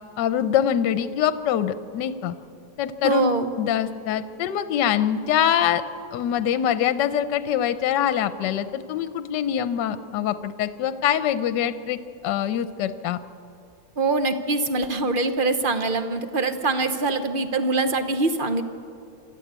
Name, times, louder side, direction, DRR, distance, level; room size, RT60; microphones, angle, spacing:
voice 1, 0.2-2.3 2.8-5.8 6.1-13.2, left 9 dB, 65° left, 12 dB, 1.3 m, -24 dB
voice 2, 3.0-3.5 14.0-18.6, right 3 dB, 40° right, 9 dB, 0.7 m, -23 dB
26.5 x 13.0 x 8.2 m, 2.5 s
omnidirectional pair, 2.1 m